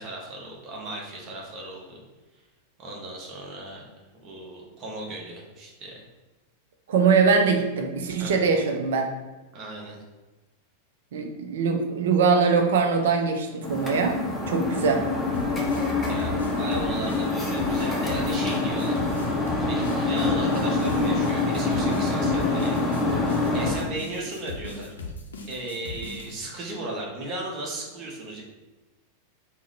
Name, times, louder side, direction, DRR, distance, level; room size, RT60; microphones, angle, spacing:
voice 1, 0.0-2.0 2.8-3.8 4.2-6.0 8.2-8.4 9.5-10.0 16.1-19.1 19.7-23.0 23.5-24.9 25.5-28.4, right 2 dB, 35° right, -2 dB, 0.8 m, -36 dB
voice 2, 6.9-9.1 11.1-14.2 14.5-15.0, right 5 dB, 60° right, 4 dB, 0.4 m, -22 dB
sound 1, 13.6-23.8, left 3 dB, 10° left, 0.6 m, -25 dB
sound 2, 15.3-26.4, left 3 dB, 70° left, 0.5 m, -38 dB
3.5 x 2.1 x 3.3 m, 1.1 s
figure-of-eight pair, 90°, 0 cm